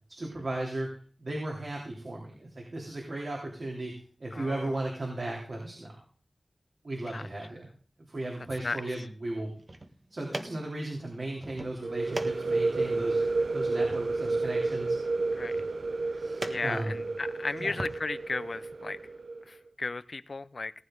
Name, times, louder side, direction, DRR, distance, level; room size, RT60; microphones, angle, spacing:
voice 1, 0.1-0.9 1.2-3.9 4.2-6.0 6.8-7.7 8.1-9.5 10.1-13.2 13.5-15.0 16.1-17.0 17.6-17.7, right 2 dB, 60° right, -2 dB, 3.5 m, -36 dB
voice 2, 4.3-4.8 7.1-7.3 8.6-8.9 13.4-13.6 15.3-15.7 16.5-19.0 19.5-20.7, left 3 dB, 65° left, 15 dB, 0.7 m, -35 dB
sound 1, 9.4-18.0, right 1 dB, 40° right, 1.5 m, -44 dB
sound 2, 11.8-19.4, right 3 dB, 80° right, 0.6 m, -31 dB
18.5 x 10.0 x 3.9 m, 0.42 s
wide cardioid pair, 80°, 0 cm